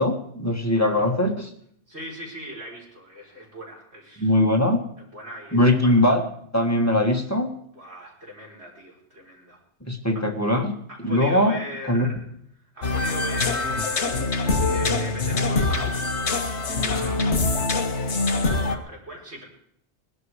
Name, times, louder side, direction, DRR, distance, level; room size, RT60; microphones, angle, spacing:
voice 1, 0.0-1.5 4.2-4.8 5.5-6.2 6.5-7.5 9.8-10.7 11.0-11.6 11.9-12.1, left 1 dB, 15° left, 2 dB, 1.5 m, -21 dB
voice 2, 1.9-4.4 5.1-6.2 7.7-9.6 10.1-10.3 10.9-12.2 12.7-16.1 16.7-19.4, equal, 75° right, -3 dB, 4.8 m, -40 dB
sound 1, 12.8-18.8, left 3 dB, 80° left, 1.5 m, -24 dB
20.0 x 11.5 x 4.9 m, 0.70 s
omnidirectional pair, 1.1 m